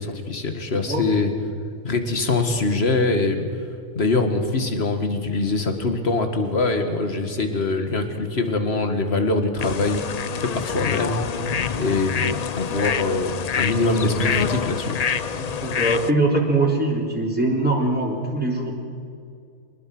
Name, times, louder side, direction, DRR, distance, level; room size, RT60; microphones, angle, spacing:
voice 1, 0.0-1.3 1.8-3.5 3.9-10.0 10.4-11.4 11.7-15.0, left 3 dB, 45° left, 6 dB, 2.1 m, -23 dB
sound 1, 9.6-16.1, left 7 dB, 75° left, 0.3 m, -26 dB
voice 2, 15.3-18.7, right 2 dB, 5° right, -2 dB, 3.4 m, -22 dB
24.5 x 20.0 x 6.2 m, 2.5 s
omnidirectional pair, 1.5 m